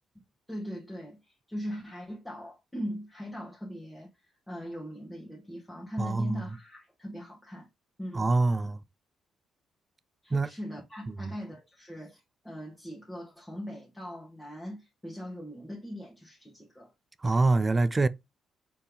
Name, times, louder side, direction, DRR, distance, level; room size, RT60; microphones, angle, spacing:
voice 1, 0.5-7.7 8.0-8.3 10.2-16.9, equal, 10° left, 1.6 m, -40 dB
voice 2, 6.0-6.4 8.1-8.8 10.3-10.5 11.2-11.3 17.2-18.1, right 3 dB, 25° right, 0.4 m, -25 dB
4.3 x 3.5 x 3.5 m
cardioid pair, 90°, 0 cm